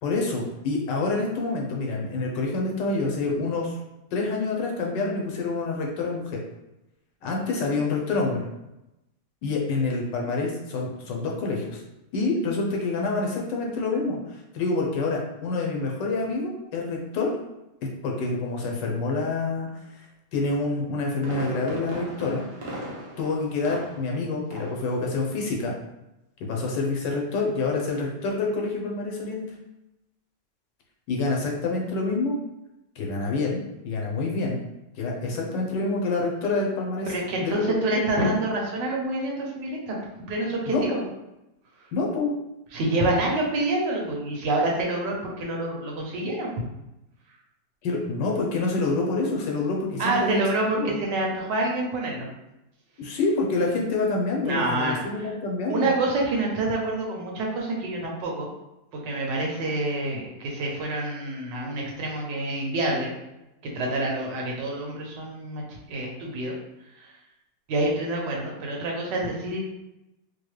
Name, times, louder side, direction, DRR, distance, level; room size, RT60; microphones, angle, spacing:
voice 1, 0.0-3.8 4.1-6.4 7.2-8.5 9.4-11.8 12.1-17.3 18.0-19.7 20.3-22.4 23.2-25.7 26.4-29.4 31.1-32.3 33.0-34.6 35.0-37.1 37.4-38.0 40.7-41.0 41.9-42.3 47.8-50.4 50.7-51.0 53.0-55.9, left 3 dB, 85° left, 0 dB, 1.5 m, -27 dB
Fireworks, 20.7-24.2 24.5-24.9 25.2-25.3, right 1 dB, 50° right, 0.5 m, -37 dB
voice 2, 37.1-40.0 40.3-41.0 42.7-46.5 50.0-52.3 54.4-55.3 55.7-58.5 58.9-63.1 63.6-65.6 65.9-66.6 67.0-67.1 67.7-69.6, right 2 dB, 85° right, -1 dB, 1.5 m, -27 dB
4.5 x 2.2 x 3.2 m, 0.92 s
omnidirectional pair, 1.9 m